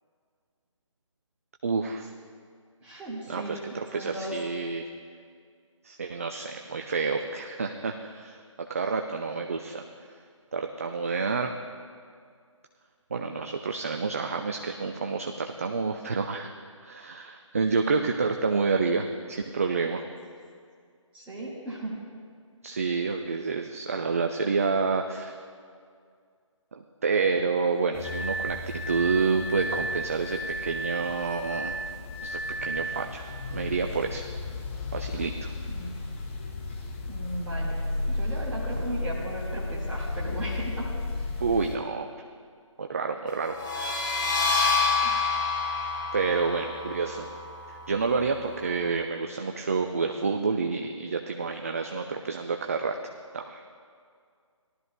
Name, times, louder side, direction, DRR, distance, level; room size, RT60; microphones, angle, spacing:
voice 1, 1.6-2.1 3.3-4.8 5.8-8.4 8.7-9.8 10.5-11.5 13.1-20.0 22.6-25.4 26.8-28.6 28.9-31.8 32.2-33.2 33.5-34.3 34.9-35.5 41.4-42.1 42.8-43.6 46.1-47.3 47.7-53.7, right 4 dB, 25° right, 4 dB, 0.3 m, -29 dB
voice 2, 2.8-3.6 3.9-4.4 21.1-22.0 35.7-35.9 37.1-37.8 38.1-41.0 45.0-45.1, right 1 dB, 10° right, -7 dB, 1.8 m, -36 dB
sound 1, 27.9-41.8, left 2 dB, 25° left, 0.9 m, -35 dB
Glass, 28.0-33.1, right 2 dB, 80° right, 1.5 m, -34 dB
sound 2, 43.5-49.0, left 4 dB, 40° left, 2.2 m, -28 dB
18.0 x 12.5 x 2.2 m, 2.1 s
figure-of-eight pair, 150°, 17 cm